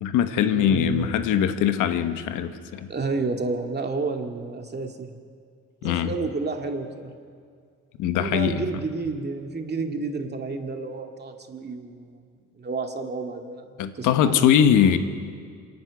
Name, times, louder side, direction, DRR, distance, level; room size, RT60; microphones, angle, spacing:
voice 1, 0.0-2.9 5.8-6.1 8.0-8.6 13.8-15.0, left 9 dB, 90° left, 10 dB, 1.2 m, -21 dB
voice 2, 0.5-1.1 2.9-5.1 5.8-7.1 8.2-12.1 12.5-13.7 14.0-14.5, right 3 dB, 35° right, 4 dB, 2.3 m, -30 dB
26.5 x 11.0 x 9.5 m, 2.1 s
cardioid pair, 90°, 30 cm